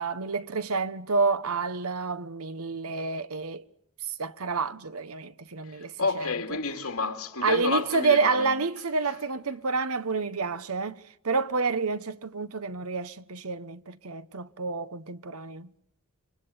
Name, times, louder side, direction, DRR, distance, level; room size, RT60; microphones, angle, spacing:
voice 1, 0.0-3.6 4.1-6.3 7.4-15.7, right 4 dB, 80° right, 1.1 m, -29 dB
voice 2, 5.6-8.5, left 4 dB, 80° left, 2.9 m, -30 dB
28.5 x 24.5 x 8.1 m
head